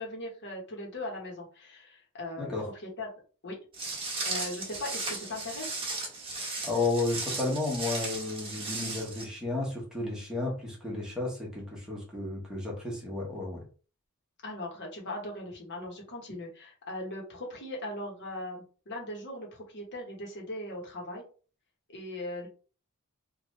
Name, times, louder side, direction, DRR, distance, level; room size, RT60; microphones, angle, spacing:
voice 1, 0.0-2.5 2.8-3.1 3.4-3.6 4.2-5.8 14.4-21.2 21.9-22.5, left 1 dB, 50° left, -1 dB, 1.1 m, -39 dB
Walk footsteps, 3.7-9.2, right 3 dB, 25° right, 1.1 m, -36 dB
voice 2, 6.6-13.7, left 2 dB, 5° right, -3 dB, 1.1 m, -32 dB
3.1 x 2.4 x 3.1 m, 0.38 s
head